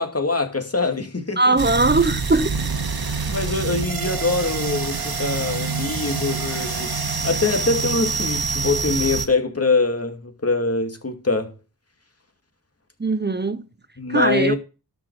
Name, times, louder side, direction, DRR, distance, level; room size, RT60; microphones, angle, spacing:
voice 1, 0.0-1.6 3.3-7.0 7.2-11.5 14.0-14.6, left 3 dB, 35° left, 2.4 m, -23 dB
voice 2, 1.4-2.5 13.0-13.7 14.1-14.5, right 3 dB, 25° right, 0.7 m, -20 dB
sound 1, 1.6-9.3, right 4 dB, 65° right, 1.7 m, -26 dB
17.5 x 6.0 x 4.8 m
wide cardioid pair, 55°, 40 cm